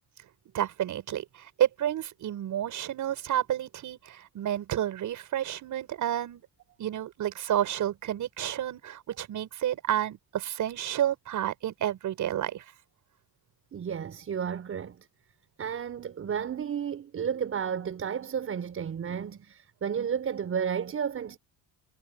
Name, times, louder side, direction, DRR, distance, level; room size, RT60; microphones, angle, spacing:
voice 1, 0.5-6.4 6.8-12.7, right 11 dB, 55° right, 6.9 m, -30 dB
voice 2, 13.7-15.1 15.6-21.4, right 7 dB, 35° right, 5.8 m, -32 dB
cardioid pair, 155°, 37 cm